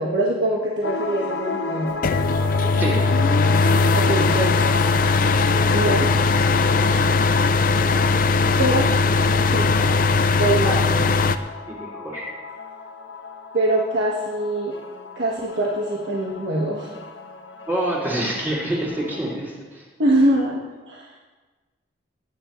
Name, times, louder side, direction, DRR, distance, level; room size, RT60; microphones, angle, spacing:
voice 1, 0.0-2.0 3.9-4.6 5.7-6.1 8.6-8.9 9.5-9.9 10.4-11.1 13.5-14.7 15.1-17.0 20.0-21.1, right 1 dB, 65° right, -4 dB, 1.5 m, -23 dB
sound 1, 0.8-19.3, left 4 dB, 70° left, 1.1 m, -33 dB
sound 2, 2.0-11.4, left 3 dB, 50° left, 0.5 m, -19 dB
voice 2, 10.6-11.0 11.7-12.3 17.7-19.8, right 1 dB, 10° right, -7 dB, 3.8 m, -27 dB
19.5 x 9.9 x 3.2 m, 1.3 s
head